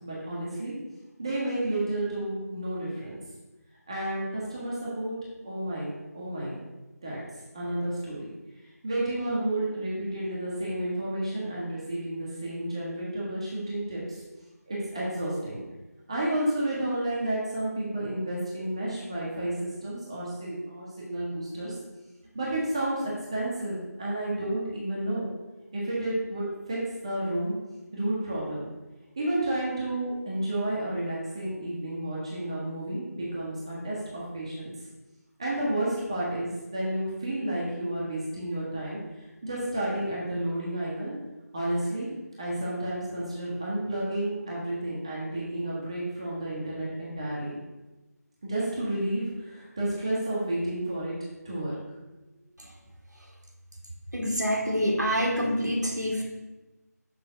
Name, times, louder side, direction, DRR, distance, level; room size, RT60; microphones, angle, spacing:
voice 1, 0.0-0.7 1.2-3.2 3.9-5.2 5.4-5.9 6.1-6.6 7.0-7.2 7.5-8.3 8.8-14.2 14.7-15.6 16.1-21.7 22.3-25.3 25.7-26.8 27.0-27.5 27.9-28.7 29.2-34.7 35.4-41.1 41.5-42.1 42.4-47.5 48.4-51.1 51.4-51.7, right 1 dB, 20° right, -6 dB, 1.1 m, -31 dB
voice 2, 54.1-56.2, equal, 85° right, -2 dB, 2.2 m, -26 dB
6.6 x 3.7 x 6.1 m, 1.1 s
figure-of-eight pair, 170°, 9 cm